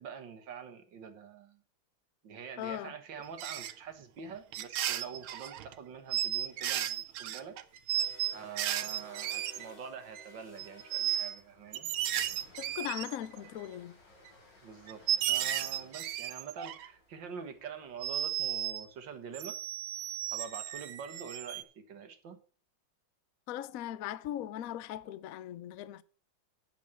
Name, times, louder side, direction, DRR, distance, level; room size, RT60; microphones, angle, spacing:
voice 1, 0.0-1.6 2.2-7.6 8.3-11.9 14.6-19.6 20.3-22.4, right 6 dB, 65° right, 2.0 m, -45 dB
voice 2, 2.6-2.9 12.6-13.9 23.5-26.0, left 11 dB, 85° left, 0.7 m, -39 dB
sound 1, 3.4-3.7 4.5-5.7 6.1-9.9 10.1-10.3 10.6-11.4 11.7-13.5 14.3-14.4 14.9-16.9 18.0-18.9 19.3-21.6, right 11 dB, 80° right, 1.6 m, -34 dB
sound 2, 6.9-18.9, left 1 dB, 60° left, 3.4 m, -58 dB
9.2 x 7.5 x 5.9 m
omnidirectional pair, 2.2 m